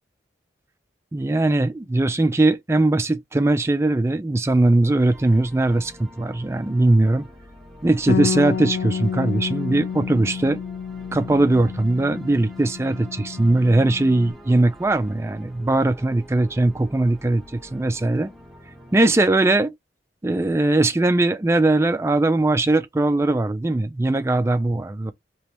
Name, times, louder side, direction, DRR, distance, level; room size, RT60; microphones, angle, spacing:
voice 1, 1.1-7.2 7.8-10.6 11.1-18.3 18.9-19.7 20.2-25.1, right 2 dB, 15° right, 0.3 m, -20 dB
sound 1, 5.0-19.4, equal, ahead, 0.8 m, -46 dB
Bass guitar, 8.1-14.3, left 6 dB, 80° left, 0.4 m, -29 dB
3.3 x 3.0 x 2.9 m
head